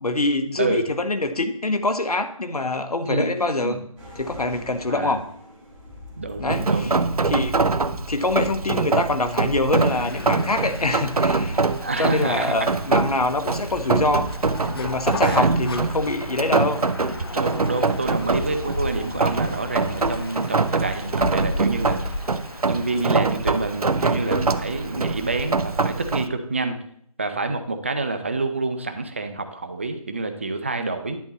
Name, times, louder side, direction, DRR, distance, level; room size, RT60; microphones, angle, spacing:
voice 1, 0.0-3.9 4.2-5.2 6.4-7.6 8.1-11.6 12.0-14.3 14.7-16.8, left 2 dB, 85° left, 8 dB, 1.1 m, -25 dB
voice 2, 3.0-3.8 4.9-5.2 6.2-6.9 11.8-12.7 15.2-15.5 17.3-22.0 22.6-26.8 27.2-31.2, right 3 dB, 20° right, 8 dB, 0.5 m, -28 dB
sound 1, 4.0-16.3, left 1 dB, 5° right, 2.0 m, -41 dB
Rain, 6.5-26.3, right 4 dB, 80° right, 0.7 m, -24 dB
sound 2, 9.7-25.9, left 3 dB, 40° left, 0.7 m, -36 dB
10.5 x 6.8 x 4.1 m, 0.64 s
figure-of-eight pair, 165°, 19 cm